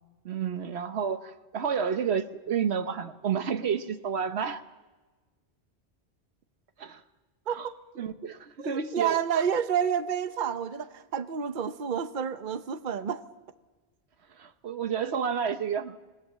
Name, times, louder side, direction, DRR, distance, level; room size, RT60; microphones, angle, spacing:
voice 1, 0.2-4.6 6.8-7.0 7.5-7.7 8.0-9.4 14.3-16.0, right 7 dB, 75° right, 10 dB, 1.2 m, -30 dB
voice 2, 8.6-13.2, right 8 dB, 50° right, 10 dB, 1.0 m, -29 dB
27.0 x 20.0 x 7.4 m, 1.3 s
omnidirectional pair, 1.1 m